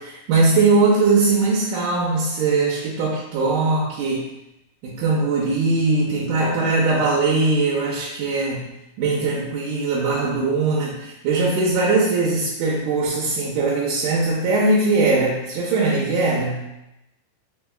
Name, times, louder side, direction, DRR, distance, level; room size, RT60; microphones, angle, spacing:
voice 1, 0.0-4.3 4.8-8.7 9.0-16.7, right 3 dB, 75° right, -5 dB, 2.0 m, -20 dB
6.1 x 2.8 x 2.3 m, 0.89 s
omnidirectional pair, 3.9 m